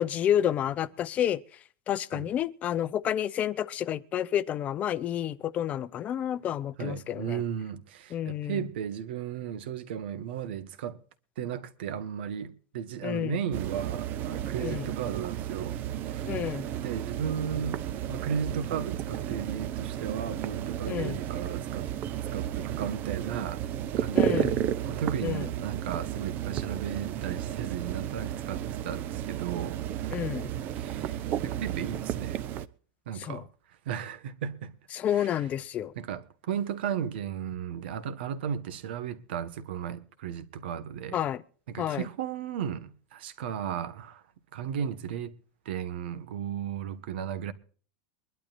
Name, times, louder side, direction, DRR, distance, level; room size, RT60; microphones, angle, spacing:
voice 1, 0.0-1.4 1.9-7.4 8.1-8.6 13.0-13.3 14.6-14.9 16.3-16.6 20.9-21.2 24.1-24.5 25.2-25.4 30.1-30.5 33.2-33.4 34.9-35.9 41.1-41.4 41.8-42.1, left 10 dB, 25° left, 0.6 m, -29 dB
voice 2, 6.8-11.0 11.4-16.3 16.8-21.9 22.3-23.6 24.0-29.8 30.7-32.5 33.0-33.5 33.8-34.7 35.1-35.4 35.9-41.2 41.7-44.2 44.5-45.3 45.6-47.5, right 8 dB, 85° right, 1.6 m, -35 dB
sound 1, 13.5-32.7, right 11 dB, 35° right, 0.7 m, -33 dB
23.5 x 12.0 x 2.6 m
supercardioid pair, 165°, 5 cm